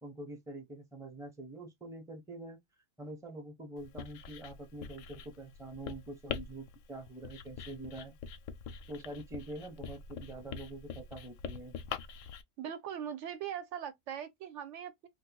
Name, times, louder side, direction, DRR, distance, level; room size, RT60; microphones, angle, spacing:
voice 1, 0.0-2.6 3.0-8.1 8.9-11.8, right 2 dB, 5° right, 0.6 m, -45 dB
Writing, 3.8-12.4, left 7 dB, 90° left, 1.0 m, -44 dB
voice 2, 12.6-15.1, right 9 dB, 75° right, 0.9 m, -40 dB
2.6 x 2.3 x 3.8 m
omnidirectional pair, 1.3 m